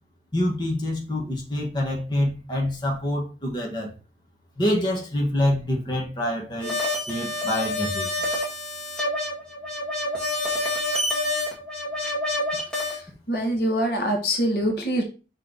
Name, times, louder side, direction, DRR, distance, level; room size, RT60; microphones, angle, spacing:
voice 1, 0.3-3.9 4.6-8.3, left 1 dB, 25° left, 1.4 m, -26 dB
sound 1, 6.6-13.0, left 1 dB, 5° left, 1.8 m, -27 dB
voice 2, 13.3-15.0, equal, 60° left, 1.5 m, -24 dB
5.9 x 4.4 x 4.0 m
head